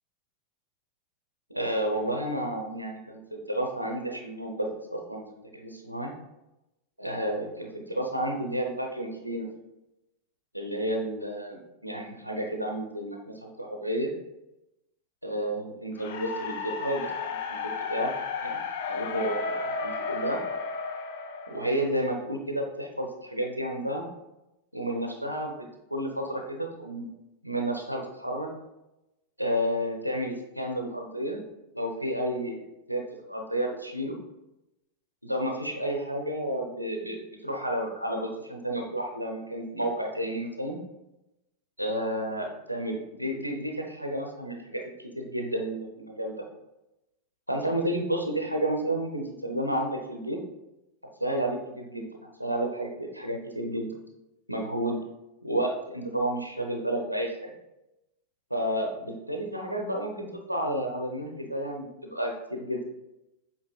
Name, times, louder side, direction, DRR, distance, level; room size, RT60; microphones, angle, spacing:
voice 1, 1.5-5.2 5.5-6.1 7.0-9.5 10.5-14.1 15.2-17.2 17.5-17.6 17.9-18.1 18.4-18.6 18.9-20.4 21.5-24.0 24.7-27.1 27.4-28.5 29.4-31.4 31.7-32.6 32.9-33.0 33.3-34.2 35.2-40.8 41.8-46.4 47.5-50.4 51.2-52.1 52.4-53.9 54.5-55.0 55.4-57.5 58.5-62.9, right 1 dB, 90° right, 2 dB, 0.6 m, -31 dB
sound 1, 16.0-22.1, left 4 dB, 50° left, 0.4 m, -33 dB
7.4 x 2.8 x 2.3 m, 0.94 s
figure-of-eight pair, 90°, 0 cm